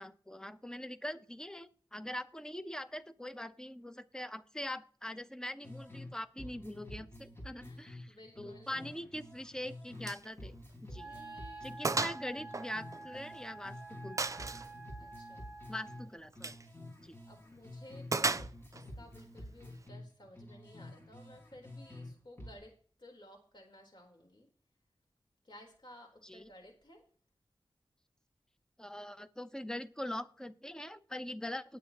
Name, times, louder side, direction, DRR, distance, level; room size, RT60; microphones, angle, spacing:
voice 1, 0.0-10.6 10.9-11.1 11.6-14.4 15.7-16.6 17.0-17.1 26.2-26.5 28.8-31.8, left 1 dB, 5° left, 11 dB, 0.9 m, -43 dB
sound 1, 5.6-6.1 6.4-10.1 10.4-14.1 14.4-18.1 18.4-22.1 22.4-22.6, left 1 dB, 25° left, 5.0 m, -49 dB
voice 2, 7.5-9.0 10.9-12.1 15.0-15.5 17.3-24.5 25.4-27.0, left 1 dB, 55° left, 1 dB, 4.0 m, -56 dB
Gunshot gunfire, 10.0-10.3 10.6-10.7 11.2-11.3 11.8-12.2 12.5-13.5 14.2-14.7 16.3-16.6 18.1-18.8, right 3 dB, 35° right, 0.5 m, -34 dB
Wind instrument woodwind instrument, 10.9-16.2, right 3 dB, 20° right, 5.2 m, -49 dB
19.0 x 8.3 x 3.0 m, 0.43 s
wide cardioid pair, 65°, 9 cm